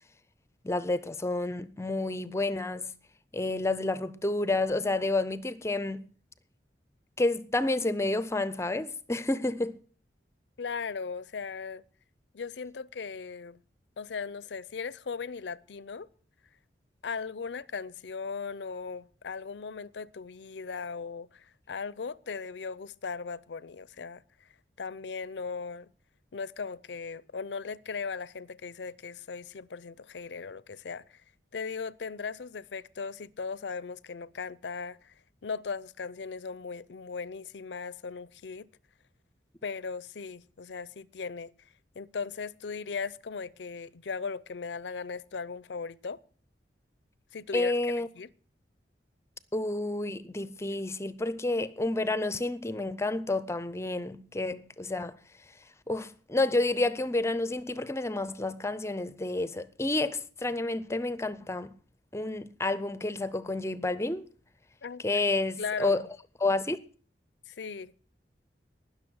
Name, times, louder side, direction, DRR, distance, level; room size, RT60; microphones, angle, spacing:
voice 1, 0.6-2.9 3.3-6.0 7.2-9.8 47.5-48.1 49.5-55.2 55.9-61.7 62.1-64.3 65.0-66.0 66.4-66.8, left 2 dB, 15° left, 0.5 m, -30 dB
voice 2, 10.6-11.8 12.3-13.6 14.0-16.1 17.0-24.5 24.8-25.9 26.3-31.2 31.5-35.1 35.4-38.7 39.6-41.7 42.0-46.2 47.3-47.7 48.1-48.3 64.8-65.3 65.6-66.1 67.5-67.9, left 5 dB, 85° left, 0.5 m, -38 dB
19.0 x 6.5 x 6.3 m
head